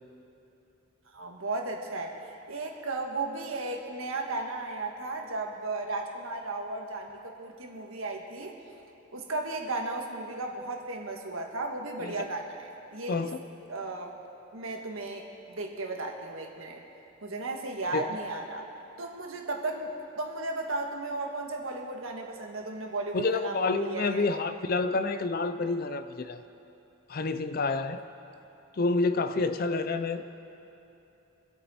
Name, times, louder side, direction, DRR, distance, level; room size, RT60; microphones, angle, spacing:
voice 1, 1.1-2.1 2.5-8.6 9.1-13.2 13.7-14.1 14.5-16.8 17.2-18.7 19.0-24.4, right 2 dB, 80° right, 2 dB, 1.6 m, -35 dB
voice 2, 13.1-13.4 17.9-18.0 23.1-26.4 27.1-28.0 28.7-30.3, left 3 dB, 45° left, 10 dB, 0.5 m, -28 dB
25.5 x 8.5 x 4.3 m, 3.0 s
head